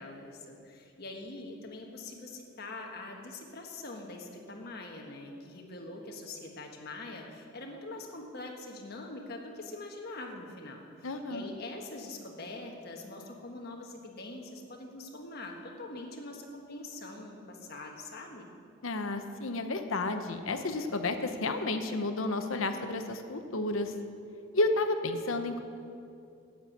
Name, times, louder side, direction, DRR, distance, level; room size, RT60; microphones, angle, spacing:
voice 1, 0.0-18.5, left 2 dB, 50° left, 1 dB, 1.5 m, -43 dB
voice 2, 11.0-11.5 18.8-23.9 24.5-25.6, left 2 dB, 75° left, 7 dB, 0.9 m, -31 dB
9.4 x 7.7 x 8.4 m, 2.5 s
head